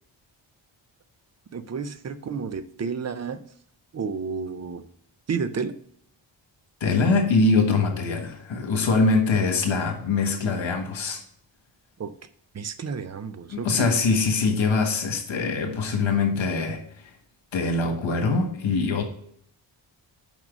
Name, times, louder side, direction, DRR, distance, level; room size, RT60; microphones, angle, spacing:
voice 1, 1.5-3.4 3.9-4.8 5.3-5.8 12.0-12.1 12.5-14.0, right 5 dB, 35° right, 0.5 m, -31 dB
voice 2, 6.8-11.2 13.5-16.8 17.5-19.0, left 4 dB, 80° left, 1.5 m, -23 dB
6.0 x 5.3 x 5.1 m
wide cardioid pair, 175°, 46 cm